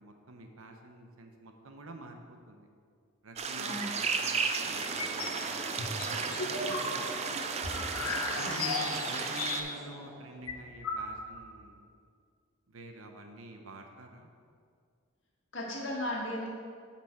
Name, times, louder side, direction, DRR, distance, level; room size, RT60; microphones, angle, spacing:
voice 1, 0.0-2.2 2.5-2.7 3.2-5.5 6.1-7.4 8.3-11.9 12.7-14.3, right 2 dB, 75° right, 4 dB, 0.8 m, -48 dB
sound 1, 3.4-9.6, right 5 dB, 30° right, 0.4 m, -34 dB
sound 2, 4.6-11.0, right 1 dB, 50° right, 2.3 m, -45 dB
sound 3, 4.8-5.4 5.8-9.9 10.2-10.3 10.5-11.4, left 3 dB, 85° left, 1.2 m, -36 dB
voice 2, 8.3-8.7 15.5-16.5, left 1 dB, 60° left, -3 dB, 1.7 m, -36 dB
8.2 x 6.0 x 4.4 m, 2.1 s
head